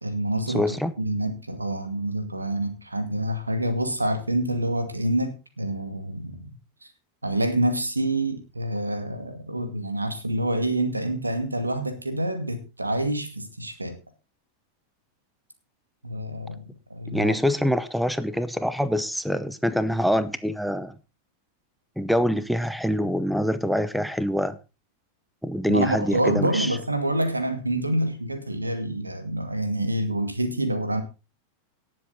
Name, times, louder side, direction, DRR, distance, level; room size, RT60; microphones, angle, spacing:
voice 1, 0.0-0.6 1.0-6.5 7.2-14.0 16.0-16.6 16.9-17.4 25.7-31.0, right 1 dB, 80° right, 2.3 m, -27 dB
voice 2, 0.5-0.9 17.1-20.9 22.0-24.6 25.4-26.8, equal, ahead, 0.8 m, -25 dB
18.0 x 7.7 x 4.1 m
figure-of-eight pair, 90°, 0 cm